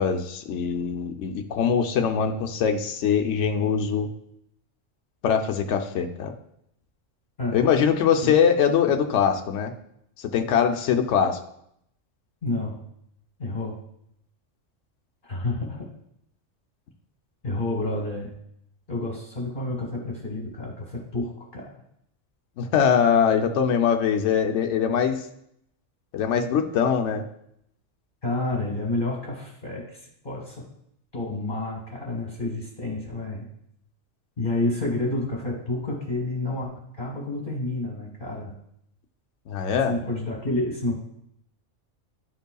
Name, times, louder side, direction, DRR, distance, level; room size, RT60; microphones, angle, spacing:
voice 1, 0.0-4.1 5.2-6.3 7.5-9.7 10.2-11.4 22.6-25.2 26.1-27.2 39.5-39.9, left 7 dB, 70° left, 4 dB, 0.9 m, -22 dB
voice 2, 12.4-12.8 13.4-13.8 15.2-15.9 17.4-18.3 18.9-21.7 28.2-30.6 31.1-33.5 34.4-36.7 37.0-38.5 39.9-41.0, left 2 dB, 40° left, -2 dB, 1.5 m, -29 dB
11.0 x 5.3 x 2.3 m, 0.73 s
omnidirectional pair, 1.3 m